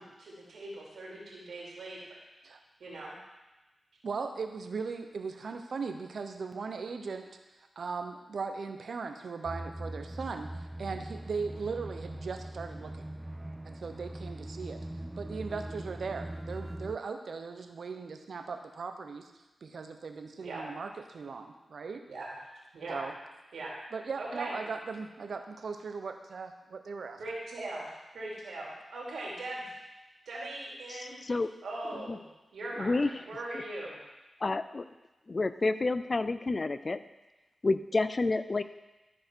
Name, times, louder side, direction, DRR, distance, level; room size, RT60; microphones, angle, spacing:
voice 1, 0.0-2.1 2.8-3.1 20.4-20.6 22.1-22.3 22.7-23.0 23.5-23.7 24.2-24.5 27.2-29.7 30.3-31.2 31.6-34.0, right 2 dB, 85° right, -4 dB, 2.8 m, -40 dB
voice 2, 4.0-7.3 7.8-13.1 13.6-14.8 15.2-19.3 19.6-22.0 22.9-23.1 23.9-27.2, right 4 dB, 70° right, 6 dB, 0.8 m, -38 dB
sound 1, 9.4-17.0, right 1 dB, 15° right, 0.4 m, -41 dB
voice 3, 30.9-31.5 32.1-32.2 32.8-33.1 34.4-34.8 35.3-37.0 37.6-38.6, left 3 dB, 45° left, 13 dB, 0.4 m, -29 dB
13.5 x 4.7 x 4.6 m, 1.1 s
cardioid pair, 50°, 0 cm